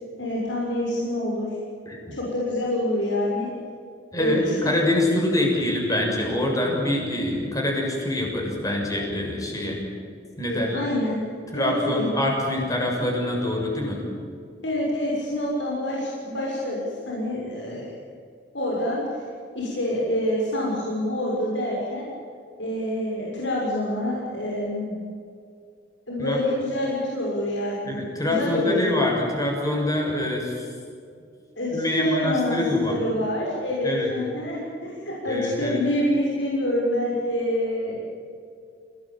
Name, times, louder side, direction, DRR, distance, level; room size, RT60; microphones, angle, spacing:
voice 1, 0.2-1.5 2.1-3.5 4.1-4.5 10.5-11.2 11.5-12.1 14.6-17.9 18.5-19.0 19.5-22.1 22.6-25.0 26.1-28.0 28.2-28.9 31.6-38.1, left 1 dB, 85° left, -4 dB, 6.8 m, -26 dB
voice 2, 1.8-2.2 4.1-9.8 10.4-10.8 11.5-14.0 26.2-26.4 27.8-30.6 31.7-33.0 33.8-34.1 35.3-35.8, left 1 dB, 20° left, 0 dB, 6.8 m, -25 dB
29.5 x 19.0 x 9.2 m, 2.4 s
head